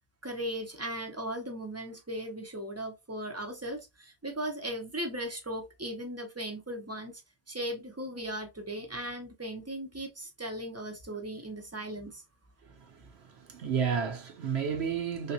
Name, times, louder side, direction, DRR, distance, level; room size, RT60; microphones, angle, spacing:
voice 1, 0.2-7.2 7.5-12.2, right 1 dB, 20° right, 0.4 m, -37 dB
voice 2, 12.6-15.3, right 7 dB, 65° right, 0.9 m, -32 dB
3.3 x 2.7 x 2.6 m
omnidirectional pair, 1.2 m